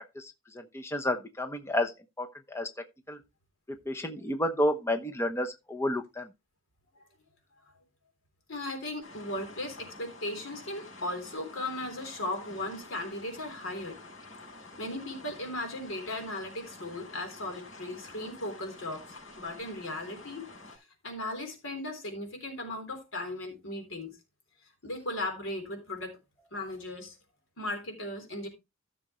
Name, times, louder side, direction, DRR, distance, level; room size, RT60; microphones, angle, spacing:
voice 1, 0.2-1.9 2.2-2.7 3.1-3.2 3.9-6.3, left 1 dB, 15° left, 0.9 m, -31 dB
voice 2, 8.5-14.0 14.8-24.2 24.8-26.2 26.5-27.2 27.6-28.5, left 1 dB, 70° left, 3.7 m, -37 dB
sound 1, 9.0-20.8, left 2 dB, 90° left, 5.2 m, -49 dB
14.5 x 6.8 x 3.1 m
head